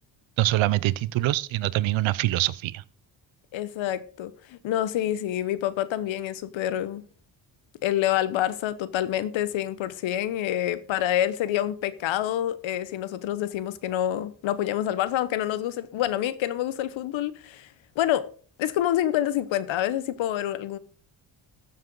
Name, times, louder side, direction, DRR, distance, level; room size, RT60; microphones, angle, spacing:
voice 1, 0.4-2.8, right 16 dB, 80° right, 0.7 m, -24 dB
voice 2, 3.5-7.1 7.8-17.7 18.0-18.3 18.6-20.8, left 12 dB, 80° left, 1.0 m, -27 dB
14.0 x 7.5 x 3.9 m
cardioid pair, 100°, 46 cm